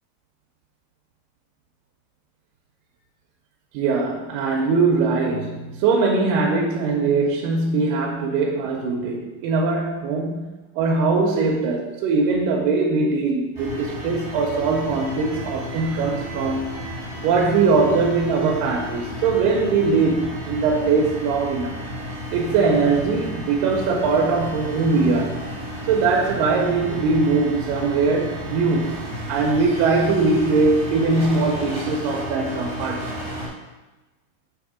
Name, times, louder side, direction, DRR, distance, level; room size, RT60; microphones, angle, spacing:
voice 1, 3.7-10.5 10.8-16.8 17.2-21.8 22.3-25.4 25.9-29.0 29.3-33.1, right 4 dB, 85° right, 0 dB, 2.3 m, -21 dB
sound 1, 13.5-33.5, equal, 15° right, 0.9 m, -32 dB
6.6 x 3.5 x 4.8 m, 1.2 s
omnidirectional pair, 3.9 m